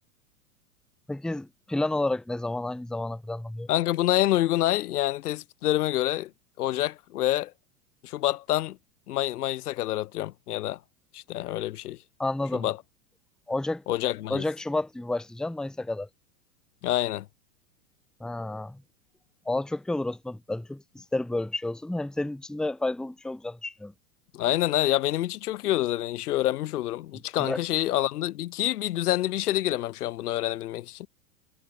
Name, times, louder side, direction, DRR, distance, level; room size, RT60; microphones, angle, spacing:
voice 1, 1.1-3.7 12.2-12.7 13.5-13.8 14.3-16.1 18.2-18.8 19.5-23.9 27.4-27.6, left 2 dB, ahead, 1.0 m, -30 dB
voice 2, 3.7-6.3 6.6-7.5 8.0-8.8 9.1-10.8 11.1-12.0 12.5-12.8 13.9-14.5 16.8-17.3 24.3-31.1, left 14 dB, 80° left, 0.6 m, -27 dB
hypercardioid pair, 95°, 45 cm